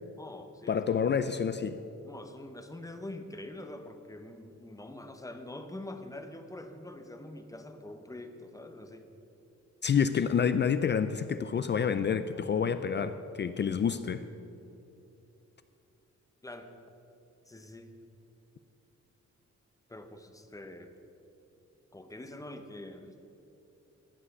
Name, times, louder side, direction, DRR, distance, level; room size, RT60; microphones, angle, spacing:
voice 1, 0.2-0.8 2.0-9.1 16.4-16.7 17.5-17.9 19.9-20.9 21.9-23.2, left 1 dB, 10° left, 7 dB, 0.8 m, -45 dB
voice 2, 0.7-1.8 9.8-14.2, left 7 dB, 40° left, 11 dB, 0.4 m, -28 dB
15.5 x 5.6 x 8.2 m, 2.8 s
wide cardioid pair, 155°, 29 cm